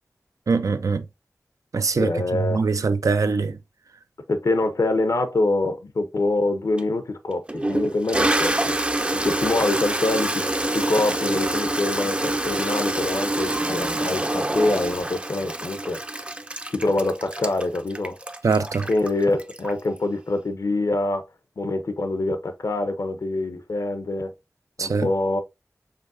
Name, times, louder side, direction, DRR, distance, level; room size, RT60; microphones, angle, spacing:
voice 1, 0.5-1.0 1.7-3.6 18.4-18.9 24.8-25.1, right 4 dB, 90° right, 0.4 m, -23 dB
voice 2, 2.0-2.6 4.3-8.8 9.1-10.5 10.7-16.0 16.7-18.2 18.9-21.3 21.6-24.3 24.8-25.4, left 2 dB, 75° left, 0.8 m, -25 dB
Toilet flush, 6.8-6.9 7.5-20.0, right 1 dB, 20° right, 0.4 m, -26 dB
5.1 x 3.4 x 2.6 m
wide cardioid pair, 55°, 6 cm